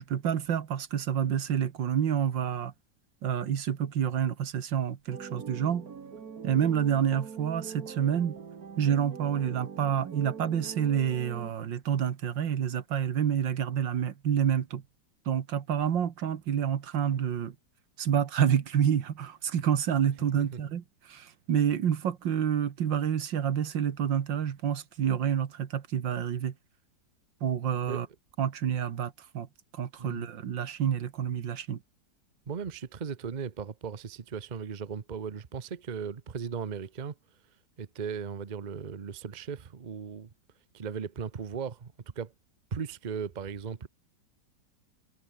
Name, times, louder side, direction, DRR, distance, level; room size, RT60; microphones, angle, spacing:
voice 1, 0.0-2.7 3.2-5.8 6.4-8.3 8.8-14.8 15.3-17.6 18.0-26.5 27.4-28.1 28.4-29.5 29.7-31.8, right 8 dB, 85° right, 2.1 m, -28 dB
sound 1, 5.1-11.5, right 6 dB, 55° right, 2.2 m, -43 dB
voice 2, 30.0-30.3 32.5-37.1 37.8-40.3 40.7-42.3 42.7-43.9, right 6 dB, 35° right, 0.8 m, -37 dB
omnidirectional pair, 2.0 m